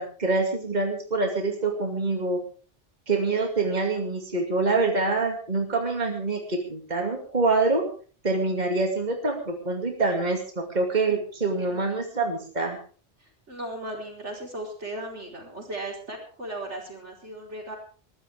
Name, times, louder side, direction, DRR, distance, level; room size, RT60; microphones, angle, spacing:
voice 1, 0.0-2.4 3.1-7.8 8.2-12.8, right 3 dB, 40° right, 2 dB, 2.6 m, -25 dB
voice 2, 11.7-12.1 13.5-17.8, right 1 dB, 85° right, 0 dB, 5.0 m, -37 dB
22.0 x 14.5 x 3.6 m, 0.41 s
omnidirectional pair, 1.2 m